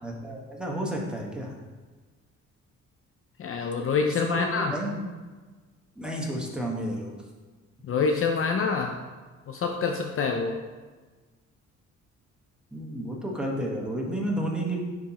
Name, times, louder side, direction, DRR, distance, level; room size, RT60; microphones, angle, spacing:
voice 1, 0.0-1.5 4.0-5.0 6.0-7.1 12.7-14.8, right 1 dB, 5° right, -2 dB, 1.3 m, -31 dB
voice 2, 3.4-4.8 7.9-9.0 9.5-10.6, left 5 dB, 45° left, 3 dB, 0.5 m, -26 dB
10.0 x 3.5 x 3.0 m, 1.4 s
cardioid pair, 90°, 30 cm